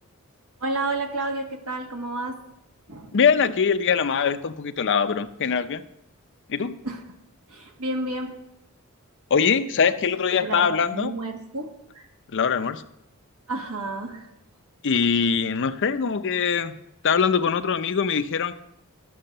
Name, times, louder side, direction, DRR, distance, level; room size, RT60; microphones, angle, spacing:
voice 1, 0.6-2.4 2.9-3.2 6.8-7.0 7.5-8.3 10.3-12.0 13.5-14.3, right 2 dB, 80° right, 3 dB, 1.7 m, -31 dB
voice 2, 3.1-5.8 6.5-6.8 9.3-11.1 12.3-12.8 14.8-16.8 17.0-18.5, left 6 dB, 55° left, 11 dB, 0.6 m, -22 dB
12.0 x 6.3 x 6.6 m, 0.82 s
head